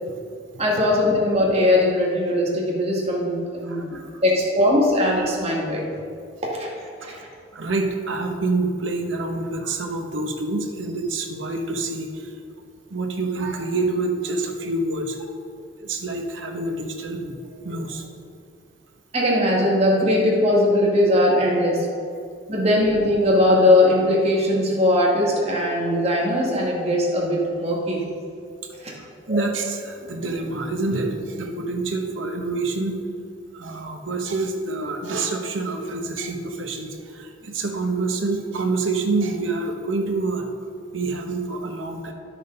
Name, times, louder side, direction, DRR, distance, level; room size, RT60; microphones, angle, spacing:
voice 1, 0.6-4.0 4.2-5.8 6.4-6.7 7.0-7.3 19.1-21.9 22.5-28.0 28.8-28.9 29.3-29.4, left 1 dB, 30° right, -3 dB, 1.9 m, -20 dB
voice 2, 3.6-4.2 7.0-7.1 7.5-12.3 12.9-15.2 15.8-18.0 29.0-33.0 33.5-40.5 40.9-42.1, right 3 dB, 85° right, 3 dB, 1.1 m, -27 dB
11.0 x 6.4 x 5.3 m, 2.3 s
head